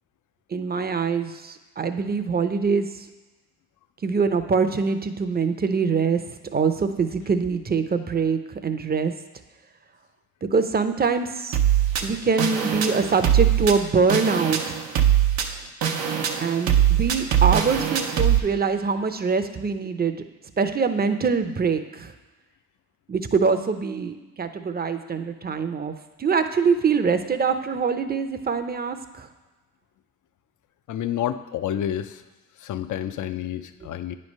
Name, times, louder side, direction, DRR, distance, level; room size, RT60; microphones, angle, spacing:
voice 1, 0.5-3.1 4.0-9.1 10.4-11.6 12.0-14.8 16.4-20.2 20.6-22.1 23.1-25.9 26.2-29.3, right 5 dB, 25° right, 9 dB, 0.6 m, -24 dB
sound 1, 11.5-18.4, right 10 dB, 80° right, 0.8 m, -22 dB
voice 2, 30.9-32.2 32.6-34.2, left 10 dB, 60° left, 11 dB, 0.5 m, -29 dB
9.3 x 3.3 x 5.3 m, 1.2 s
cardioid pair, 65°, 35 cm